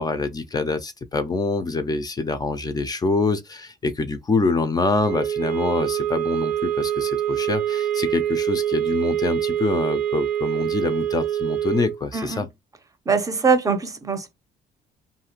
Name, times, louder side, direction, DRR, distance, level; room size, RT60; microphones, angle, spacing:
voice 1, 0.0-12.5, left 3 dB, 25° left, 0.4 m, -25 dB
sound 1, 5.0-12.0, right 11 dB, 65° right, 0.4 m, -25 dB
voice 2, 12.1-12.5 13.1-14.3, right 4 dB, 20° right, 0.6 m, -22 dB
2.7 x 2.4 x 2.9 m
cardioid pair, 110°, 17 cm